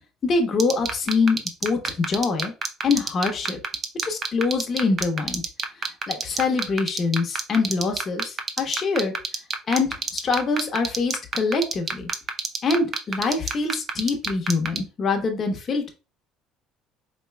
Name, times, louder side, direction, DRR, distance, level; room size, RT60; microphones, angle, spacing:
voice 1, 0.2-2.5 2.8-3.6 4.0-5.4 6.1-9.1 9.7-12.1 12.6-15.9, left 4 dB, 35° left, 4 dB, 0.9 m, -24 dB
sound 1, 0.6-14.8, right 5 dB, 40° right, 0.6 m, -26 dB
4.2 x 3.0 x 2.2 m, 0.32 s
cardioid pair, 110°, 0 cm